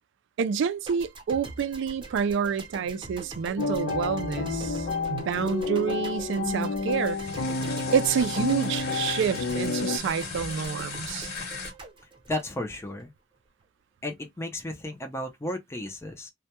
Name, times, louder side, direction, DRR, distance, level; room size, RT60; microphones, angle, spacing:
voice 1, 0.4-7.2 7.9-11.3, right 7 dB, 65° right, 0.3 m, -28 dB
sound 1, 0.9-13.1, right 2 dB, 25° right, 0.7 m, -43 dB
sound 2, 3.6-10.0, left 3 dB, 80° left, 0.6 m, -30 dB
sound 3, 7.0-11.7, left 4 dB, 55° left, 1.0 m, -38 dB
voice 2, 12.3-13.1 14.0-16.3, left 1 dB, 15° left, 0.4 m, -33 dB
2.2 x 2.1 x 2.8 m
head